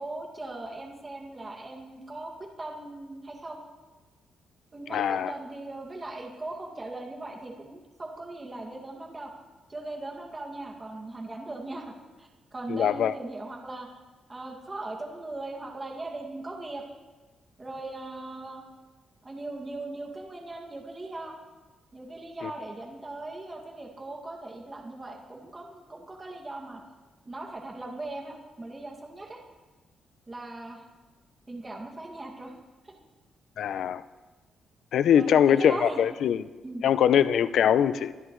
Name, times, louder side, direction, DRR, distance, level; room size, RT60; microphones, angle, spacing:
voice 1, 0.0-3.6 4.7-9.3 9.7-13.9 14.3-16.8 17.6-18.6 19.2-21.3 21.9-26.8 27.3-29.4 30.3-30.8 31.5-32.5 32.8-32.9 35.1-36.0 36.6-36.8, right 2 dB, 20° right, 2.2 m, -39 dB
voice 2, 4.9-5.3 12.7-13.1 22.4-22.5 33.6-34.0 34.9-36.5 36.8-38.1, left 9 dB, 70° left, 0.5 m, -22 dB
25.5 x 12.5 x 3.2 m
cardioid pair, 140°, 0 cm